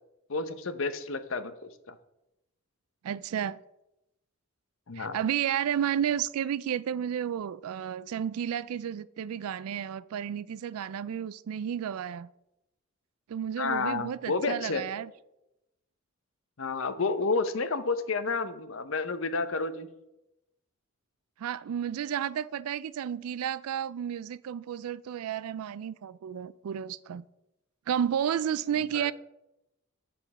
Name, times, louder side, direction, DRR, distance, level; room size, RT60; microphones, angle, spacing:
voice 1, 0.3-2.0 4.9-5.2 13.6-14.8 16.6-19.9 28.9-29.1, left 4 dB, 65° left, 0.7 m, -30 dB
voice 2, 3.0-3.6 5.0-12.3 13.3-15.1 21.4-27.2 27.9-29.1, right 9 dB, 85° right, 0.3 m, -32 dB
8.1 x 6.8 x 5.3 m
head